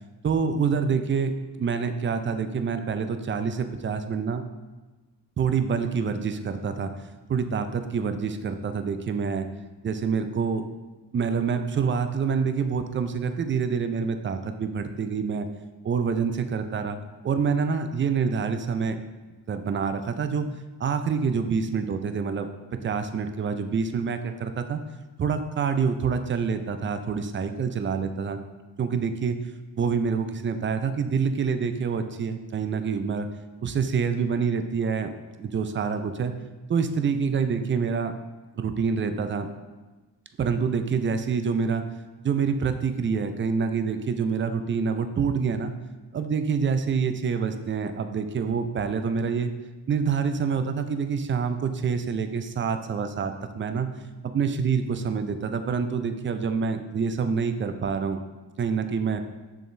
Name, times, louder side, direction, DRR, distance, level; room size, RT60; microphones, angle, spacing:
voice 1, 0.2-4.4 5.4-6.9 7.3-9.5 9.8-10.6 11.1-15.5 15.8-17.0 17.2-19.0 19.5-20.5 20.8-24.8 25.2-28.4 28.8-29.4 29.8-33.3 33.6-35.1 35.4-36.3 36.7-38.1 38.6-39.5 40.4-41.8 42.2-45.7 46.1-49.5 49.9-53.9 54.2-58.2 58.6-59.2, right 6 dB, 30° right, 8 dB, 0.4 m, -26 dB
6.9 x 3.0 x 2.6 m, 1.2 s
supercardioid pair, 50°, 44 cm